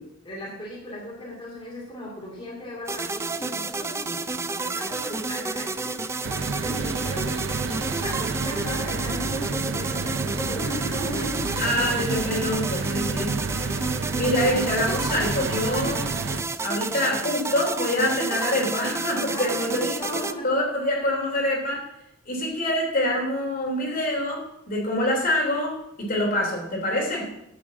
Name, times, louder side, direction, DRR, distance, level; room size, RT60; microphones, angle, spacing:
voice 1, 0.0-5.9 6.6-7.5 8.0-11.6 14.4-14.5 16.4-16.5 19.3-20.6, equal, 25° left, -5 dB, 2.5 m, -37 dB
sound 1, 2.9-20.3, right 3 dB, 15° right, 0.4 m, -31 dB
sound 2, 6.2-16.4, right 4 dB, 70° right, 0.6 m, -30 dB
voice 2, 11.6-13.8 14.1-16.1 16.6-21.8 22.3-27.3, left 1 dB, 45° left, -2 dB, 3.2 m, -26 dB
11.0 x 5.1 x 7.2 m, 0.81 s
head